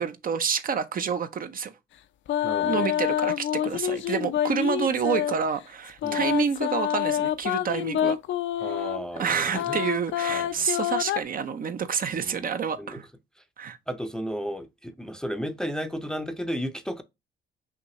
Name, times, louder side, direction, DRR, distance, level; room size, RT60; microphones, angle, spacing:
voice 1, 0.0-1.7 2.6-8.2 8.6-8.9 9.2-13.1 13.6-13.8, right 6 dB, 45° right, 0.5 m, -28 dB
sound 1, 2.3-5.4 6.0-9.1 9.5-11.2, left 11 dB, 70° left, 0.5 m, -27 dB
voice 2, 2.4-2.9 6.0-6.3 8.6-9.8 10.3-10.7 12.1-12.5 12.8-13.0 13.9-17.0, equal, 5° left, 0.5 m, -34 dB
5.7 x 2.7 x 2.9 m
cardioid pair, 90°, 20 cm